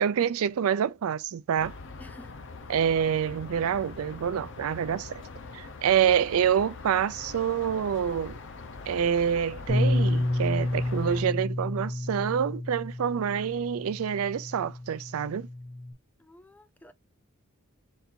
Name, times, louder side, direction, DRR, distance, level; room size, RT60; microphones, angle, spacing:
voice 1, 0.0-1.7 2.7-5.2 5.5-8.4 8.9-15.5, right 8 dB, 70° right, 0.4 m, -27 dB
sound 1, 1.6-11.2, left 3 dB, 55° left, 0.7 m, -43 dB
voice 2, 2.0-2.3 16.2-16.9, left 1 dB, 5° left, 0.3 m, -51 dB
Bass guitar, 9.7-15.9, left 1 dB, 40° left, 1.2 m, -30 dB
3.9 x 2.6 x 4.3 m
head